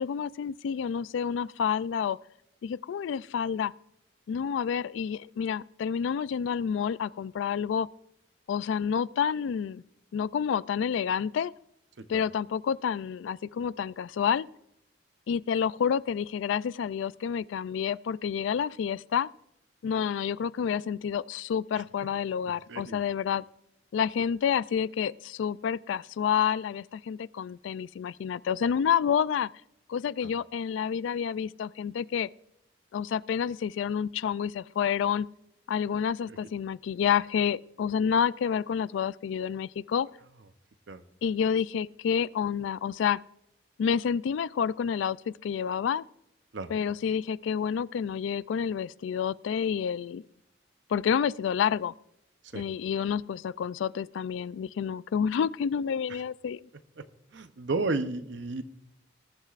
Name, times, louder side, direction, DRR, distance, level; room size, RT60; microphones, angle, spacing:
voice 1, 0.0-2.2 2.6-3.7 4.3-7.9 8.5-9.8 10.1-11.5 12.1-14.5 15.3-19.3 19.8-23.4 23.9-29.5 29.9-32.3 32.9-35.3 35.7-40.1 41.2-43.2 43.8-46.0 46.7-50.2 50.9-51.9 52.5-56.7, left 7 dB, 80° left, 0.3 m, -29 dB
voice 2, 22.7-23.0 30.2-30.3 36.3-36.4 40.9-41.0 46.5-46.7 52.5-52.6 56.1-56.2 57.3-58.6, right 3 dB, 70° right, 0.7 m, -32 dB
20.0 x 11.0 x 2.5 m
head